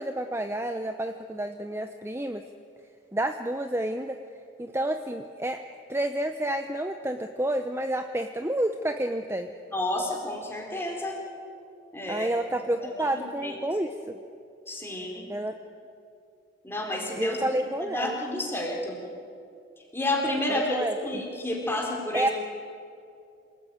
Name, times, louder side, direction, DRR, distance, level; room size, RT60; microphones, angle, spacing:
voice 1, 0.0-2.4 3.1-4.2 4.6-5.6 5.9-9.5 12.1-14.2 15.3-15.6 17.2-18.2 20.5-21.2 22.1-22.3, right 1 dB, 15° right, 7 dB, 0.7 m, -29 dB
voice 2, 9.7-11.2 11.9-12.3 12.8-13.6 14.7-15.3 16.6-19.0 19.9-22.3, left 1 dB, 10° left, 0 dB, 3.9 m, -30 dB
27.5 x 18.5 x 9.3 m, 2.5 s
head